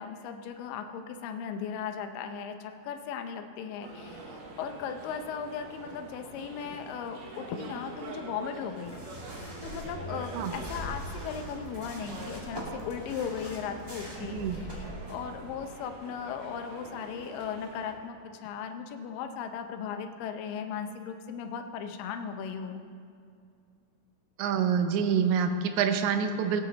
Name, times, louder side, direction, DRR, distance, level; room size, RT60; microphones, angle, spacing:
voice 1, 0.0-9.0 9.6-22.8, left 7 dB, 80° left, 6 dB, 2.3 m, -37 dB
sound 1, 3.8-17.9, right 2 dB, 60° right, 2.3 m, -45 dB
sound 2, 8.8-15.1, equal, 10° right, 1.5 m, -42 dB
voice 2, 24.4-26.6, right 7 dB, 75° right, 7 dB, 1.8 m, -26 dB
18.0 x 8.7 x 4.0 m, 2.3 s
omnidirectional pair, 4.1 m